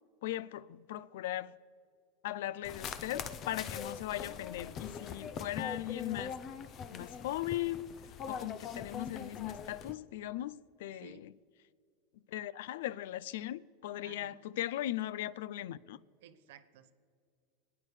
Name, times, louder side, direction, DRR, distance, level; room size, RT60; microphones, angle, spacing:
voice 1, 0.2-1.6 2.2-6.4 6.9-7.9 8.3-11.3 12.3-16.0, left 14 dB, 80° left, 0.3 m, -38 dB
sound 1, 2.6-9.9, left 6 dB, 40° left, 0.7 m, -42 dB
voice 2, 10.9-11.2 14.0-14.4 16.2-16.9, right 9 dB, 80° right, 0.8 m, -56 dB
27.0 x 9.6 x 3.3 m
supercardioid pair, 125°, 0 cm